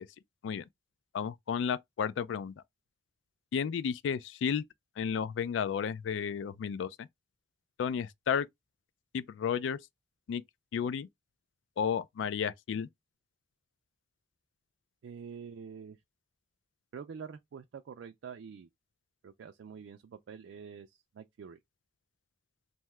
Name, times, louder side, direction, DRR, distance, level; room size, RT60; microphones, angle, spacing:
voice 1, 1.1-2.5 3.5-4.6 5.0-7.1 7.8-8.5 9.1-9.8 10.3-10.4 10.7-11.1 11.8-12.9, left 7 dB, 70° left, 0.3 m, -32 dB
voice 2, 15.0-16.0 16.9-18.7 19.2-21.6, right 6 dB, 70° right, 0.3 m, -46 dB
2.7 x 2.3 x 3.1 m
head